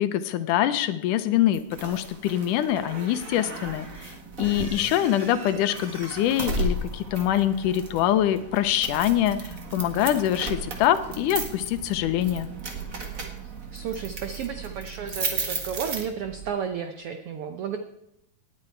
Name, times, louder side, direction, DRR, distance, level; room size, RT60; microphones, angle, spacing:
voice 1, 0.0-12.5, left 12 dB, 85° left, 12 dB, 2.3 m, -24 dB
sound 1, 1.5-16.5, right 3 dB, 40° right, 1.3 m, -35 dB
voice 2, 13.7-17.8, right 7 dB, 85° right, 7 dB, 1.2 m, -32 dB
18.5 x 9.8 x 4.5 m, 0.82 s
omnidirectional pair, 3.6 m